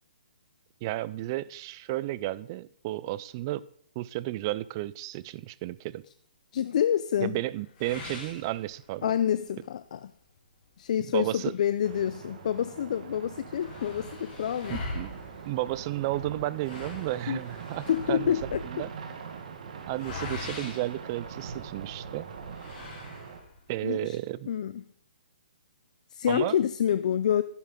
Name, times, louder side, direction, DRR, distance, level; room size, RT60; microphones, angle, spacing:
voice 1, 0.8-3.7 4.0-6.0 7.2-9.1 11.1-11.5 14.7-15.1 15.5-18.3 18.6-18.9 19.9-22.3 23.7-24.5 26.3-26.6, right 16 dB, 25° right, 0.3 m, -33 dB
voice 2, 6.5-7.4 9.0-10.1 10.8-14.8 17.3-17.4 17.9-18.6 23.8-24.2 24.5-24.8 26.1-27.4, left 9 dB, 50° left, 0.4 m, -27 dB
sound 1, 7.8-9.2 9.7-9.8 10.2-10.3 11.1-12.4 12.8-12.9 13.1-21.8 22.5-23.7, left 3 dB, 30° left, 3.9 m, -43 dB
sound 2, 11.8-23.4, right 6 dB, 50° right, 1.6 m, -42 dB
10.5 x 10.5 x 3.8 m
hypercardioid pair, 165°, 5 cm